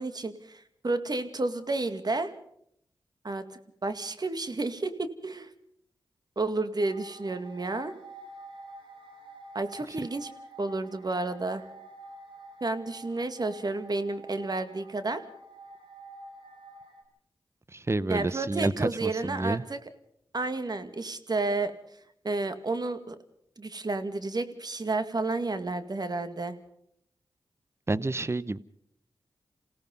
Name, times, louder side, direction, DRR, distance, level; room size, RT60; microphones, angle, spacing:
voice 1, 0.0-2.3 3.2-3.4 3.8-5.5 6.4-7.9 9.5-10.3 10.6-11.7 12.6-15.2 18.1-19.8 20.3-21.7 22.2-23.2 23.6-26.6, right 3 dB, 50° right, 10 dB, 2.1 m, -31 dB
sound 1, 6.8-17.0, right 2 dB, 75° right, 5.7 m, -48 dB
voice 2, 17.7-19.6 27.9-28.6, right 2 dB, 30° right, 18 dB, 0.9 m, -29 dB
28.0 x 17.5 x 5.3 m, 0.70 s
cardioid pair, 45°, 9 cm